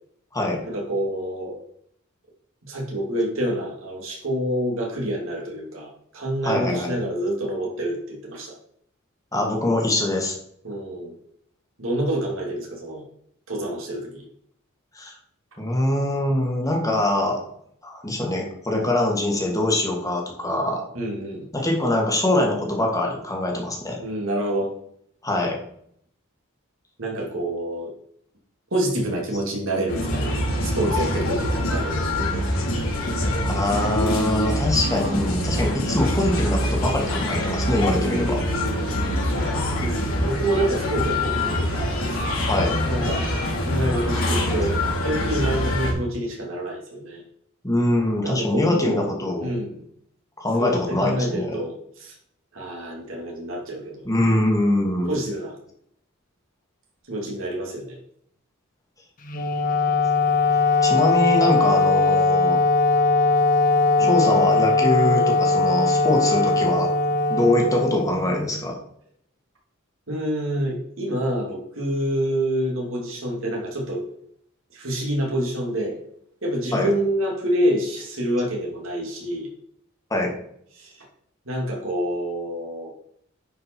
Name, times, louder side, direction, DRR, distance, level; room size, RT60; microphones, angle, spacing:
voice 1, 0.7-1.6 2.6-8.5 10.6-11.1 11.8-13.0 13.5-14.2 20.9-21.4 24.0-24.7 27.0-27.9 28.7-30.4 30.6-32.4 38.0-42.2 42.9-43.3 43.6-47.2 48.2-49.1 49.4-49.8 50.6-52.1 52.5-54.0 55.1-55.6 57.1-58.0 64.0-64.2 70.1-74.0 74.7-76.0 76.4-79.5 80.8-80.9 81.5-82.9, right 1 dB, 70° right, -1 dB, 2.6 m, -27 dB
voice 2, 6.4-6.9 9.3-10.3 14.9-15.1 15.6-17.4 17.8-20.8 21.5-24.0 25.2-25.6 33.6-38.4 42.5-42.7 47.6-49.5 50.4-51.6 54.0-55.1 60.8-62.6 64.0-66.9 67.3-68.8 76.7-76.9 80.1-80.3, left 1 dB, 15° left, 0 dB, 1.8 m, -23 dB
sound 1, 29.9-45.9, left 1 dB, 80° left, 2.7 m, -24 dB
Wind instrument woodwind instrument, 59.2-68.6, left 3 dB, 40° left, 1.1 m, -20 dB
10.0 x 5.2 x 4.6 m, 0.68 s
head